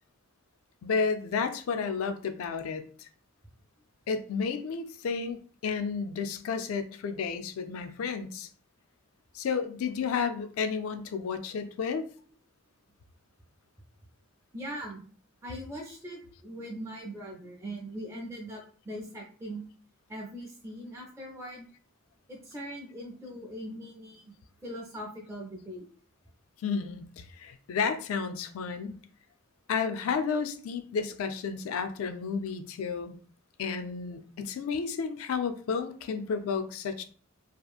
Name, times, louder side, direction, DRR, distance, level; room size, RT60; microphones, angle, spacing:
voice 1, 0.8-3.1 4.1-8.5 9.3-12.1 26.6-29.0 29.7-33.1 33.6-37.0, left 5 dB, 80° left, 9 dB, 0.3 m, -32 dB
voice 2, 14.5-15.0 15.4-19.6 20.1-21.7 22.3-24.3 24.6-25.8, equal, 15° right, -3 dB, 0.4 m, -41 dB
2.8 x 2.4 x 2.3 m, 0.42 s
head